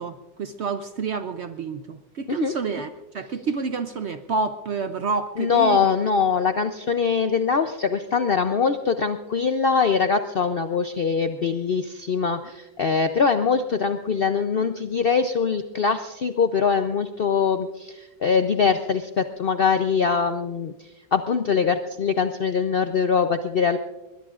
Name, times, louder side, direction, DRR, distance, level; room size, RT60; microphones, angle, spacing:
voice 1, 0.0-5.8, right 4 dB, 60° right, 9 dB, 0.7 m, -29 dB
voice 2, 5.4-20.7 21.1-23.8, left 5 dB, 60° left, 8 dB, 0.5 m, -22 dB
21.5 x 21.0 x 2.4 m, 1.0 s
omnidirectional pair, 1.7 m